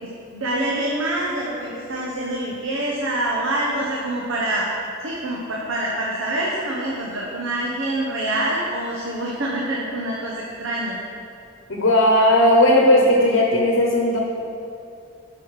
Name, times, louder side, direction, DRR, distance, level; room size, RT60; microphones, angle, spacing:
voice 1, 0.0-4.7 5.0-11.0, right 1 dB, 75° right, -4 dB, 1.1 m, -26 dB
voice 2, 11.7-14.2, left 1 dB, 65° left, 0 dB, 1.0 m, -16 dB
12.0 x 5.6 x 4.9 m, 2.6 s
head